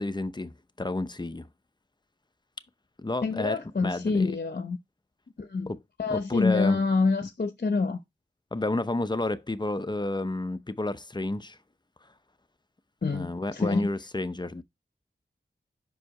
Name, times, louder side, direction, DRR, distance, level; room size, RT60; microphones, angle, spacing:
voice 1, 0.0-1.5 3.0-4.3 5.7-5.8 6.1-6.8 8.5-11.6 13.1-14.6, left 2 dB, 25° left, 0.7 m, -30 dB
voice 2, 3.2-4.8 5.4-5.7 6.0-8.0 13.0-13.9, left 4 dB, 55° left, 0.8 m, -27 dB
5.6 x 5.0 x 4.8 m
cardioid pair, 50°, 19 cm